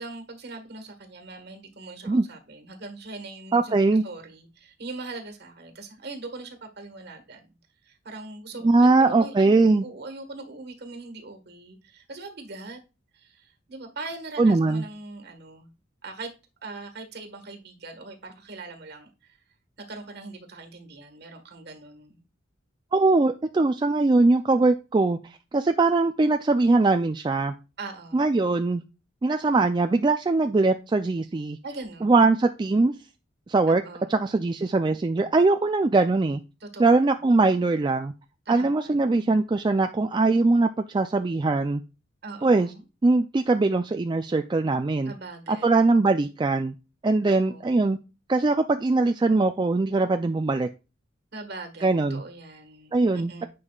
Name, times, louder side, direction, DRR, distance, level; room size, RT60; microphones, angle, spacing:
voice 1, 0.0-7.5 7.8-12.8 13.1-15.7 16.0-16.3 16.6-19.4 19.8-22.2 27.8-28.2 31.6-32.1 33.7-34.1 36.6-36.8 38.4-38.9 42.2-42.8 45.0-45.7 47.3-47.7 51.3-53.5, right 3 dB, 55° right, 1.5 m, -41 dB
voice 2, 3.5-4.0 8.6-9.8 14.4-14.8 22.9-25.2 25.5-27.5 28.1-28.8 29.2-31.6 32.0-32.9 33.5-33.8 34.1-36.4 36.8-38.1 38.5-41.8 42.4-42.7 43.0-45.1 45.5-46.7 47.0-48.0 48.3-50.7 51.8-52.2 52.9-53.4, right 3 dB, 25° right, 0.3 m, -21 dB
9.8 x 5.4 x 2.3 m
head